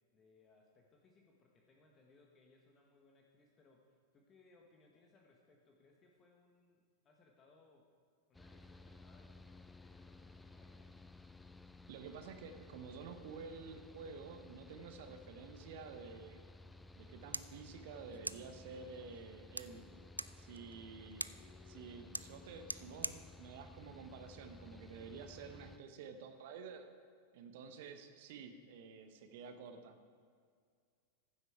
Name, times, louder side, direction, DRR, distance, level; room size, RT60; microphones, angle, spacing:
voice 1, 0.1-7.9 8.3-11.0, left 3 dB, 25° left, 1 dB, 1.3 m, -68 dB
Mechanical fan, 8.3-25.8, left 2 dB, 5° left, 0.4 m, -56 dB
voice 2, 11.9-16.4 16.9-19.9 20.4-21.2 21.6-26.8 27.3-30.0, right 5 dB, 50° right, 7 dB, 1.0 m, -50 dB
sound 1, 16.9-24.9, right 1 dB, 85° right, 0.3 m, -48 dB
Female singing, 18.8-24.5, left 5 dB, 60° left, 1.4 m, -71 dB
14.5 x 8.0 x 4.7 m, 2.1 s
figure-of-eight pair, 90°, 0 cm